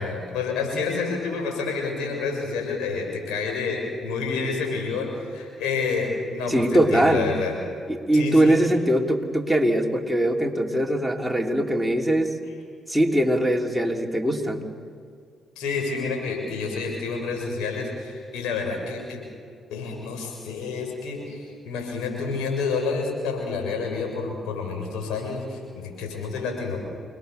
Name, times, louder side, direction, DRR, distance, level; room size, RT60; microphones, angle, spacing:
voice 1, 0.0-7.5 8.1-8.6 15.6-19.2 19.7-26.8, left 4 dB, 75° left, 1 dB, 7.1 m, -29 dB
voice 2, 6.5-7.3 7.9-12.3 12.9-14.6, right 1 dB, ahead, 0 dB, 3.6 m, -21 dB
28.5 x 21.0 x 7.0 m, 2.3 s
hypercardioid pair, 50°, 0 cm